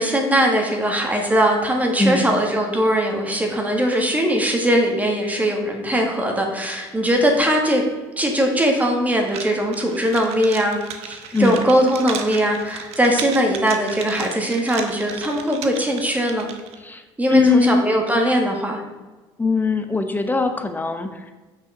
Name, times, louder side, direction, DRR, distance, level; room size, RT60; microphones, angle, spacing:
voice 1, 0.0-7.8 8.2-16.5 17.2-18.8, equal, 15° right, 2 dB, 1.7 m, -20 dB
voice 2, 2.0-2.4 11.3-11.7 16.8-17.0 17.3-17.8 19.4-21.3, left 3 dB, 15° left, 7 dB, 0.8 m, -20 dB
sound 1, 9.3-16.8, right 8 dB, 65° right, 0.9 m, -35 dB
6.4 x 5.6 x 5.5 m, 1.2 s
supercardioid pair, 85°, 11 cm